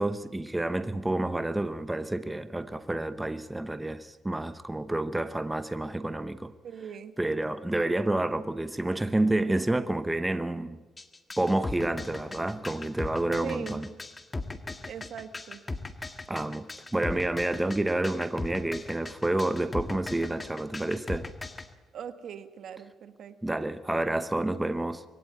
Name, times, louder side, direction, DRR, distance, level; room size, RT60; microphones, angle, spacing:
voice 1, 0.0-6.5 7.2-10.8 11.4-13.9 16.3-21.3 23.4-25.0, right 1 dB, 10° right, 0.8 m, -29 dB
voice 2, 6.6-7.1 13.4-14.0 14.9-15.6 21.9-23.6, right 8 dB, 65° right, 1.6 m, -41 dB
sound 1, 11.0-21.7, left 3 dB, 20° left, 1.6 m, -38 dB
22.0 x 17.0 x 9.3 m
cardioid pair, 90°, 0 cm